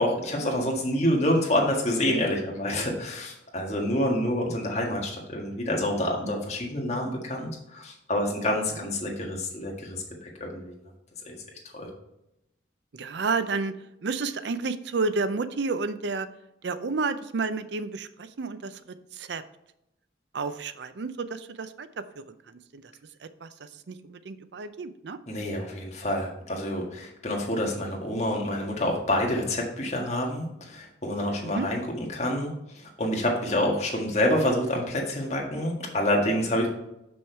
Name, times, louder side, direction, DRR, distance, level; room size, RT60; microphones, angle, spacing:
voice 1, 0.0-10.8 11.3-11.4 11.7-11.9 25.3-32.5 32.8-36.7, left 1 dB, 35° left, 0 dB, 1.7 m, -27 dB
voice 2, 12.9-13.7 14.0-16.3 16.6-18.8 19.1-19.4 20.3-21.9 22.7-22.8 23.2-25.2 31.4-31.7, right 4 dB, 65° right, 13 dB, 0.5 m, -31 dB
6.3 x 6.2 x 4.5 m, 0.85 s
head